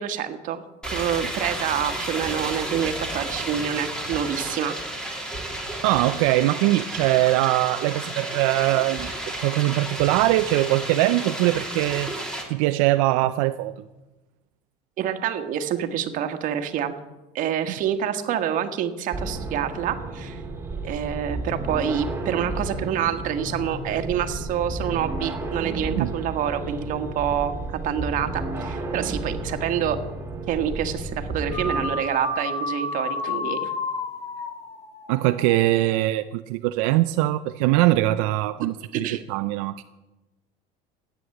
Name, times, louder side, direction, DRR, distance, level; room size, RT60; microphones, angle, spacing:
voice 1, 0.0-4.8 15.0-16.9 17.3-20.4 20.8-30.0 30.5-33.7 38.9-39.2, right 9 dB, 50° right, 7 dB, 1.5 m, -27 dB
sound 1, 0.8-12.4, right 1 dB, 5° left, 3.0 m, -32 dB
voice 2, 5.8-9.1 9.4-12.1 12.5-13.7 25.9-26.1 35.1-39.8, right 17 dB, 80° right, 9 dB, 0.6 m, -22 dB
sound 2, 19.1-31.8, right 2 dB, 15° right, 2.2 m, -32 dB
sound 3, 31.5-36.0, left 3 dB, 40° left, 2.2 m, -31 dB
14.0 x 9.7 x 7.8 m, 1.1 s
cardioid pair, 125°, 17 cm